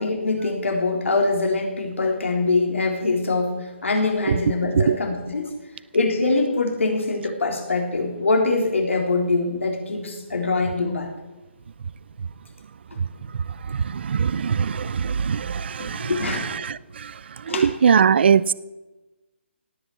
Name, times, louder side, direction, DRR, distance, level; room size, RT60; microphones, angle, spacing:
voice 1, 0.0-3.5 3.8-5.5 5.9-11.1 15.8-16.4 17.5-17.7, left 3 dB, 90° left, 2 dB, 3.7 m, -23 dB
voice 2, 13.6-18.5, right 7 dB, 60° right, 20 dB, 0.5 m, -22 dB
18.0 x 7.9 x 8.5 m, 1.1 s
hypercardioid pair, 160°, 7 cm